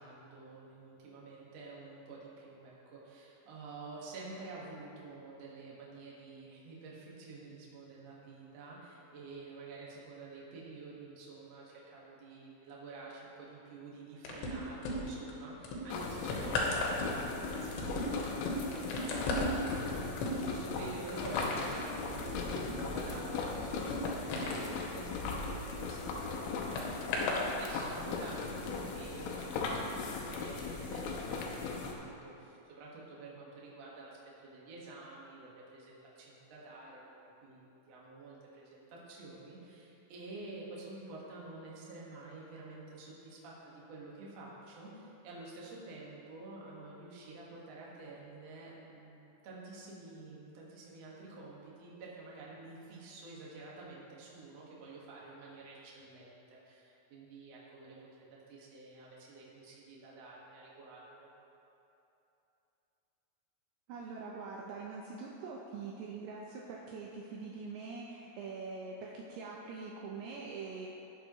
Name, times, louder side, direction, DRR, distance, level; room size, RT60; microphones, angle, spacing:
voice 1, 0.0-37.0 37.4-61.3, right 3 dB, 60° right, -5 dB, 1.7 m, -49 dB
sound 1, 14.3-15.3 15.6-26.0 26.8-27.4 28.2-28.3, left 2 dB, 70° left, 3.2 m, -36 dB
sound 2, 15.9-31.9, left 4 dB, 90° left, 3.4 m, -39 dB
voice 2, 63.9-70.9, right 4 dB, 90° right, -3 dB, 2.2 m, -44 dB
18.0 x 6.8 x 3.1 m, 2.9 s
omnidirectional pair, 5.6 m